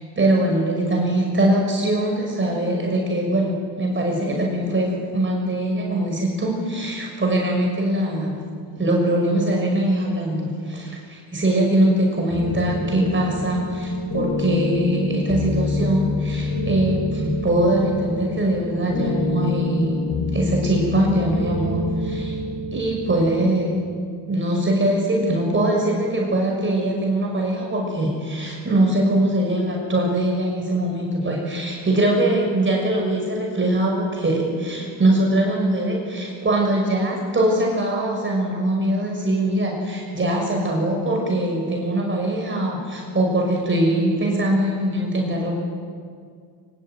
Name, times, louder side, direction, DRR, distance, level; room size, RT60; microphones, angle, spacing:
voice 1, 0.2-8.4 8.8-20.0 20.3-22.4 22.7-23.8 24.3-45.5, right 1 dB, 25° right, -1 dB, 6.1 m, -22 dB
sound 1, 12.3-23.5, left 2 dB, 65° left, 7.3 m, -27 dB
24.5 x 23.5 x 9.1 m, 2.1 s
cardioid pair, 135°, 47 cm